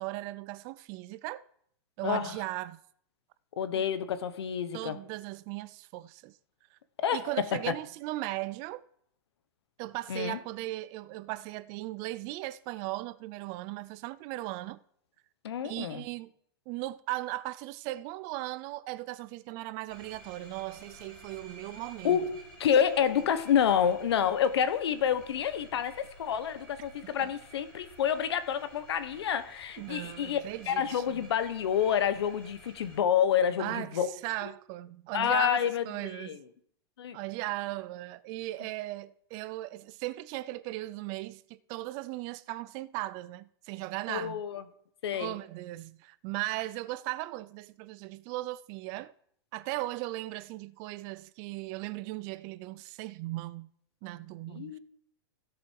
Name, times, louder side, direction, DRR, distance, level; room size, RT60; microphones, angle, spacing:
voice 1, 0.0-1.4 2.0-2.8 3.7-3.9 4.7-6.4 6.7-6.8 7.1-8.8 9.8-14.8 15.6-16.3 16.7-22.2 27.2-27.3 29.8-31.2 33.6-36.4 37.1-44.4 45.1-49.1 49.5-53.7 54.0-54.8, right 18 dB, 30° right, 0.3 m, -37 dB
voice 2, 2.0-2.4 3.6-5.0 7.0-7.2 7.5-7.7 10.1-10.4 15.4-16.0 22.0-30.4 30.7-34.1 35.1-36.4 37.0-37.2 44.1-44.6 45.0-45.3 54.5-54.8, left 8 dB, 85° left, 1.3 m, -28 dB
sound 1, 19.9-33.0, equal, 10° left, 3.8 m, -53 dB
16.0 x 6.9 x 4.7 m
supercardioid pair, 165°, 13 cm